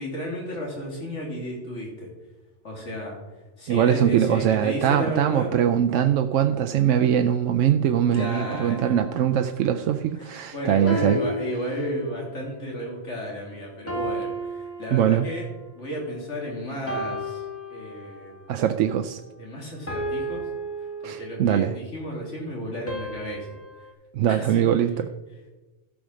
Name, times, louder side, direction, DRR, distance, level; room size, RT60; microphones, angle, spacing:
voice 1, 0.0-2.1 2.6-3.2 3.6-5.6 8.1-8.9 10.2-15.5 15.7-17.4 17.7-18.5 19.4-20.4 21.0-23.5 24.3-25.1, equal, 75° left, -1 dB, 3.3 m, -33 dB
voice 2, 3.7-11.2 14.9-15.3 18.5-19.2 21.0-21.8 24.1-25.1, right 9 dB, 85° right, 7 dB, 0.9 m, -22 dB
sound 1, 8.1-9.8 10.9-12.4 13.9-15.5 16.9-18.4 19.9-21.6 22.9-23.9, right 1 dB, 10° left, 1.7 m, -34 dB
13.0 x 5.0 x 6.3 m, 1.1 s
omnidirectional pair, 1.2 m